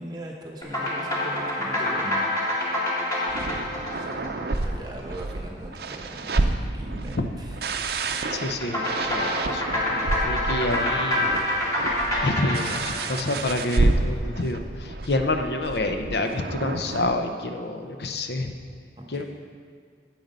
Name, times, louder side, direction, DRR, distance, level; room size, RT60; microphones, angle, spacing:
voice 1, 0.0-2.5 3.9-7.6 19.0-19.2, right 1 dB, 25° right, -1 dB, 1.0 m, -40 dB
sound 1, 0.6-5.3 8.6-14.0, left 1 dB, 20° left, 1.9 m, -27 dB
sound 2, 3.3-17.2, right 2 dB, 60° right, 0.6 m, -29 dB
voice 2, 8.3-11.3 12.2-18.5 19.1-19.2, left 2 dB, 70° left, 6 dB, 0.7 m, -28 dB
9.2 x 7.7 x 5.4 m, 2.1 s
head